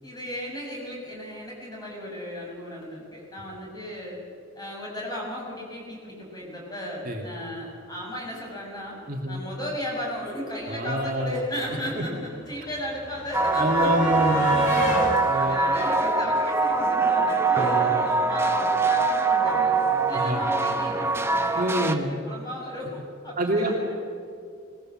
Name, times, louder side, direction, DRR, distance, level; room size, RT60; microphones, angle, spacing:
voice 1, 0.0-4.2 4.5-9.0 9.3-14.2 15.0-23.8, left 1 dB, 20° left, -3 dB, 6.7 m, -35 dB
voice 2, 9.1-9.4 10.7-11.4 12.0-12.1 13.6-14.6 15.3-15.6 17.5-18.0 20.1-20.4 21.6-22.1 23.4-23.7, right 1 dB, 45° right, 0 dB, 2.3 m, -26 dB
sound 1, 10.6-10.7 10.9-17.1 18.3-18.4 18.7-18.8, left 1 dB, 40° left, 4.3 m, -32 dB
sound 2, 13.3-21.9, right 3 dB, 10° right, 1.1 m, -23 dB
20.5 x 20.0 x 7.6 m, 2.4 s
head